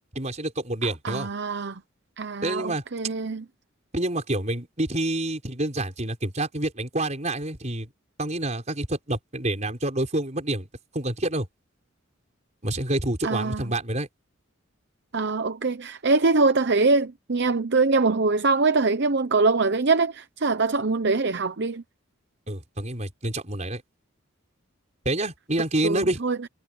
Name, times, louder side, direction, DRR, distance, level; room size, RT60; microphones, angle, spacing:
voice 1, 0.2-1.3 2.4-2.8 3.9-7.9 8.2-10.7 10.9-11.5 12.6-14.1 22.5-23.8 25.1-26.2, right 1 dB, 35° right, 5.3 m, -28 dB
voice 2, 0.8-1.8 2.2-3.4 13.2-13.6 15.1-21.8 25.8-26.4, right 3 dB, 55° right, 0.8 m, -23 dB
head